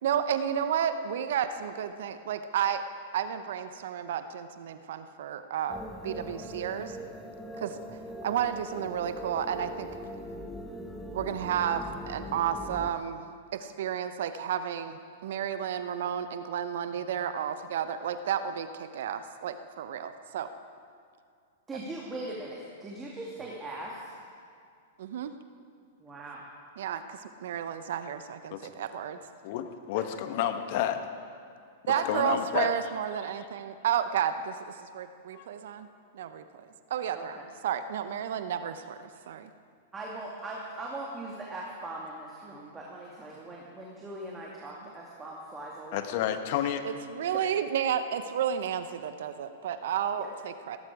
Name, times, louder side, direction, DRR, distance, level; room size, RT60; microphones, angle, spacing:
voice 1, 0.0-2.9 3.1-7.0 7.6-7.8 8.2-9.9 11.1-13.2 13.5-20.5 25.0-25.3 26.8-29.2 31.9-35.9 36.1-37.4 37.6-39.0 39.3-39.5 46.8-50.8, right 9 dB, 65° right, 10 dB, 0.8 m, -32 dB
sound 1, 5.7-12.9, equal, 5° left, 1.3 m, -41 dB
voice 2, 21.7-24.1 26.0-26.4 31.9-32.2 37.1-37.4 39.9-46.7 50.2-50.3, right 2 dB, 15° right, -3 dB, 2.4 m, -40 dB
voice 3, 29.4-31.0 32.1-32.7 35.3-35.4 45.9-46.8, left 11 dB, 55° left, 8 dB, 1.2 m, -30 dB
17.0 x 14.0 x 4.9 m, 2.3 s
hypercardioid pair, 110°, 0 cm